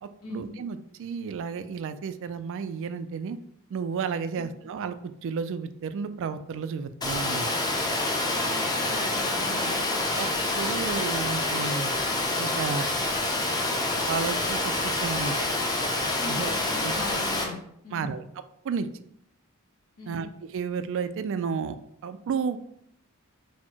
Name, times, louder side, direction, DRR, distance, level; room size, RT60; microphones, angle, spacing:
voice 1, 0.0-3.4 3.7-5.0 5.2-7.5 10.2-10.3 10.5-11.9 12.4-12.9 14.1-15.4 16.3-16.5 16.8-16.9 17.9-18.2 18.6-18.9 20.1-21.8 22.0-22.6, right 6 dB, 60° right, 12 dB, 0.3 m, -32 dB
Water, 7.0-17.4, left 2 dB, 20° left, 0.6 m, -27 dB
voice 2, 8.3-9.7 16.2-18.2 20.0-20.2, left 1 dB, 90° left, -1 dB, 0.9 m, -40 dB
4.2 x 2.1 x 4.4 m, 0.73 s
head